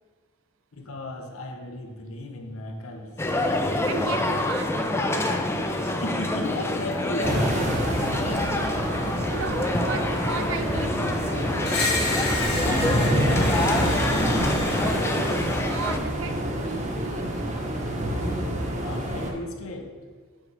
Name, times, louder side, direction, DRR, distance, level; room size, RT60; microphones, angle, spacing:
voice 1, 0.7-3.1 5.7-8.8 12.6-15.2 18.1-19.9, left 2 dB, 80° left, 3 dB, 0.9 m, -36 dB
Piazza Anfiteatro Lucca, 3.2-16.0, left 1 dB, 10° left, 0.4 m, -27 dB
voice 2, 3.9-5.5 9.1-11.8 15.7-17.3, right 5 dB, 70° right, 8 dB, 0.5 m, -36 dB
sound 1, 7.2-19.3, right 1 dB, 35° right, 0.9 m, -27 dB
Screech, 11.6-15.6, left 3 dB, 55° left, 1.1 m, -31 dB
7.5 x 5.2 x 3.2 m, 1.5 s
head